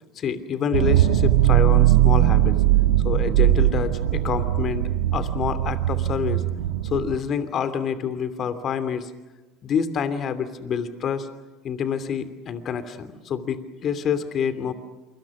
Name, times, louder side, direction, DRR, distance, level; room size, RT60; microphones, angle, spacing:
voice 1, 0.2-2.6 3.0-6.4 6.8-9.1 9.6-11.3 11.6-14.7, left 7 dB, 45° left, 12 dB, 2.8 m, -27 dB
sound 1, 0.7-7.2, right 13 dB, 80° right, 1.5 m, -20 dB
28.0 x 25.5 x 6.3 m, 1.1 s
hypercardioid pair, 70°, 0 cm